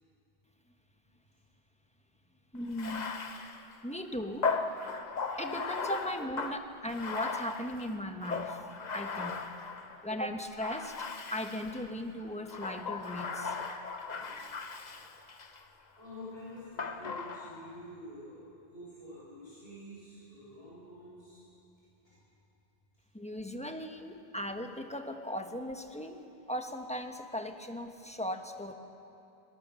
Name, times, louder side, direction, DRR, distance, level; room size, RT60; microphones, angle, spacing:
voice 1, 2.5-3.1 3.8-4.5 5.4-8.7 8.9-9.4 10.0-13.6 23.1-26.2 26.5-28.7, left 1 dB, 5° left, 5 dB, 1.2 m, -38 dB
Bathtub (filling or washing), 2.7-10.0 10.6-11.9 12.4-15.6 16.8-17.8, left 4 dB, 45° left, 1.0 m, -37 dB
voice 2, 15.9-21.4, left 1 dB, 80° left, -10 dB, 7.6 m, -48 dB
22.5 x 21.0 x 6.9 m, 2.8 s
omnidirectional pair, 1.0 m